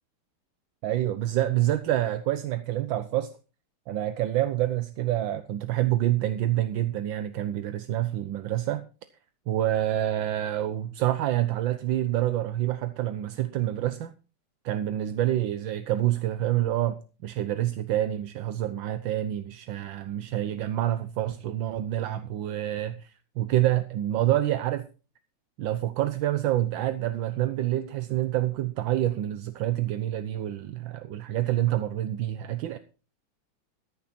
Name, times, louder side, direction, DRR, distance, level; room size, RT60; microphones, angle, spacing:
voice 1, 0.8-3.3 3.9-8.8 9.5-14.1 14.6-24.8 25.6-32.8, right 13 dB, 80° right, 1.5 m, -27 dB
14.5 x 10.5 x 4.3 m
omnidirectional pair, 2.1 m